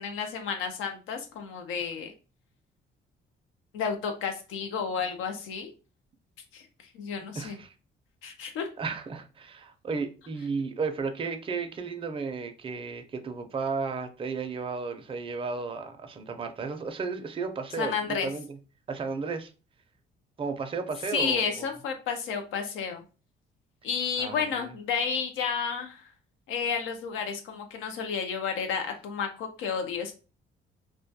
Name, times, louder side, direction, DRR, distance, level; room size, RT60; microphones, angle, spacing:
voice 1, 0.0-2.1 3.7-5.7 6.5-6.7 6.9-7.6 8.2-8.7 17.8-18.3 21.1-23.0 23.8-26.1 26.5-30.1, left 6 dB, 85° left, 0.4 m, -31 dB
voice 2, 7.4-7.7 8.8-18.5 18.9-19.5 20.4-21.7 24.2-24.7, right 4 dB, 25° right, 0.4 m, -34 dB
2.2 x 2.2 x 2.6 m
cardioid pair, 90°, 20 cm